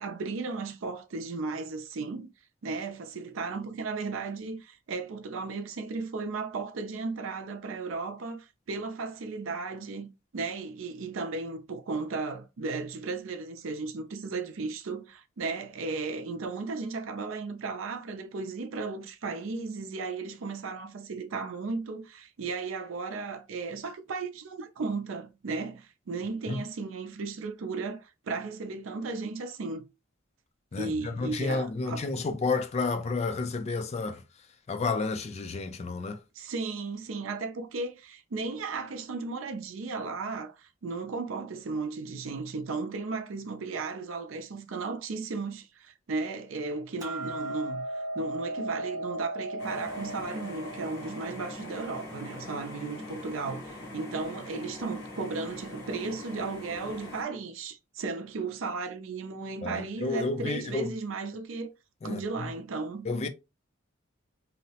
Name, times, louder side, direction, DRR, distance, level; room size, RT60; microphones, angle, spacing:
voice 1, 0.0-2.3 2.6-29.8 30.8-32.1 36.3-61.7 62.0-63.1, right 4 dB, 80° right, 0.5 m, -35 dB
voice 2, 30.7-34.2 34.7-36.2 59.6-60.9 62.0-62.4 63.1-63.3, left 3 dB, 35° left, 0.3 m, -31 dB
Hammer, 47.0-53.2, right 1 dB, 20° right, 0.6 m, -38 dB
sound 1, 49.6-57.2, left 2 dB, 55° left, 0.8 m, -42 dB
2.7 x 2.0 x 2.8 m
head